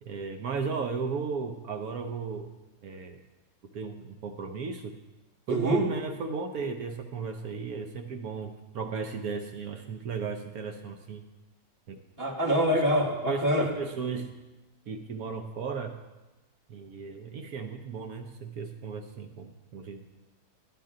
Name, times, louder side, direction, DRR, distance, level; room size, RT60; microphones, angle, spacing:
voice 1, 0.0-2.5 2.8-3.2 3.7-4.9 5.5-11.2 11.9-12.0 12.7-12.8 13.3-14.3 14.9-15.9 16.7-20.0, right 5 dB, 75° right, 5 dB, 1.2 m, -35 dB
voice 2, 5.5-5.8 12.2-13.7, equal, 15° right, -1 dB, 1.4 m, -25 dB
13.0 x 9.3 x 3.8 m, 1.1 s
omnidirectional pair, 1.6 m